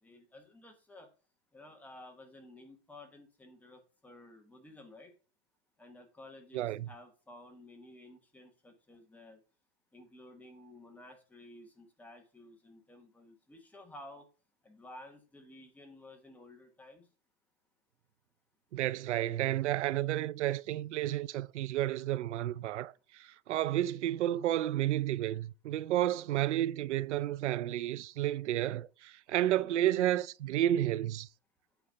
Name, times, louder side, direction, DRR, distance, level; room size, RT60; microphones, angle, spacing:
voice 1, 0.0-1.1 1.5-5.1 5.8-9.4 9.9-14.3 14.6-17.1 26.0-26.3 29.6-29.9, left 1 dB, 5° left, 1.1 m, -53 dB
voice 2, 6.5-6.9 18.7-31.3, right 13 dB, 85° right, 0.6 m, -31 dB
9.0 x 4.1 x 5.7 m
supercardioid pair, 155°, 34 cm